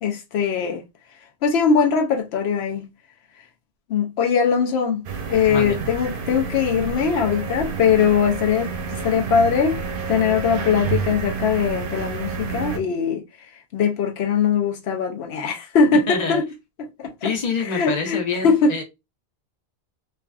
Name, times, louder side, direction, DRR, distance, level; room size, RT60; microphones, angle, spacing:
voice 1, 0.0-0.8 1.4-2.9 3.9-5.0 5.3-8.7 9.0-9.8 10.1-13.2 13.7-16.5 16.8-17.1 17.6-18.7, left 6 dB, 80° left, 0.8 m, -21 dB
sound 1, 5.0-12.8, right 6 dB, 65° right, 0.7 m, -29 dB
voice 2, 16.1-16.4 17.2-18.8, left 5 dB, 45° left, 0.9 m, -26 dB
3.2 x 2.4 x 2.3 m
omnidirectional pair, 1.0 m